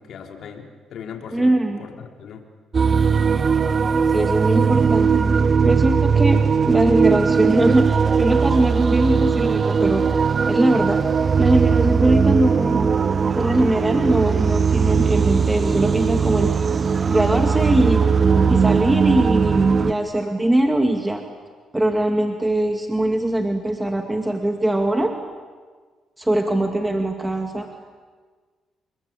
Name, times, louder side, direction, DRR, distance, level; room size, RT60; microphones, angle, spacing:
voice 1, 0.0-1.5 1.8-2.4, left 7 dB, 70° left, 3 dB, 3.8 m, -38 dB
voice 2, 1.3-1.9 4.1-5.2 5.6-10.0 10.5-11.0 11.4-12.9 13.3-16.5 17.1-18.0 18.5-21.2 21.7-25.1 26.2-27.7, right 1 dB, 10° right, 4 dB, 2.4 m, -21 dB
sound 1, 2.7-19.9, right 6 dB, 40° right, 0.9 m, -19 dB
29.0 x 21.5 x 8.7 m, 1.5 s
cardioid pair, 90°, 0 cm